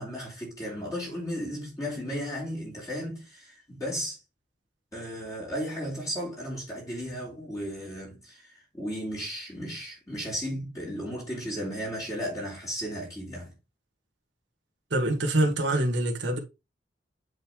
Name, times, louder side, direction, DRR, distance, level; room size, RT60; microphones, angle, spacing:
voice 1, 0.0-4.2 4.9-13.5, equal, 20° left, 3.2 m, -35 dB
voice 2, 14.9-16.4, right 1 dB, 85° right, 1.7 m, -25 dB
8.0 x 5.4 x 3.0 m
head